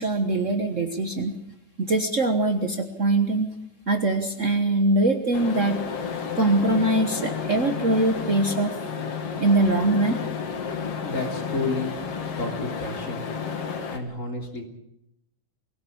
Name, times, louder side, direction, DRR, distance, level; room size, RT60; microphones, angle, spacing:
voice 1, 0.0-1.4 1.8-3.5 3.9-5.8 6.3-8.8 9.4-10.2, right 2 dB, 80° right, 6 dB, 0.6 m, -22 dB
sound 1, 5.3-14.0, left 6 dB, 50° left, 2.9 m, -31 dB
voice 2, 11.0-11.9 12.4-13.2 13.9-14.6, left 3 dB, 25° left, 3 dB, 3.4 m, -30 dB
24.0 x 17.0 x 8.6 m, 0.81 s
omnidirectional pair, 3.6 m